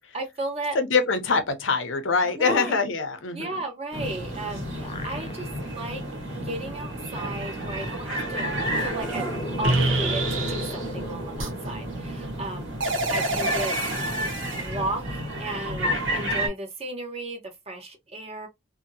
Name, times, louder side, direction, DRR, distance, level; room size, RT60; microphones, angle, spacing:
voice 1, 0.0-0.8 2.2-2.8 3.3-6.0 6.5-8.5 8.8-9.3 9.6-12.7 13.1-13.7 14.6-17.4 17.7-18.5, right 1 dB, 30° right, 0.8 m, -34 dB
voice 2, 0.7-3.6, left 4 dB, 80° left, 0.6 m, -24 dB
sound 1, 3.9-16.5, right 1 dB, 70° right, 1.3 m, -31 dB
sound 2, 4.4-5.8 6.2-6.3 7.6-12.4, left 2 dB, 30° left, 0.4 m, -38 dB
sound 3, 8.9-9.0 9.6-10.9 11.4-11.5 12.8-14.6, right 2 dB, 85° right, 0.8 m, -27 dB
2.7 x 2.6 x 2.6 m
head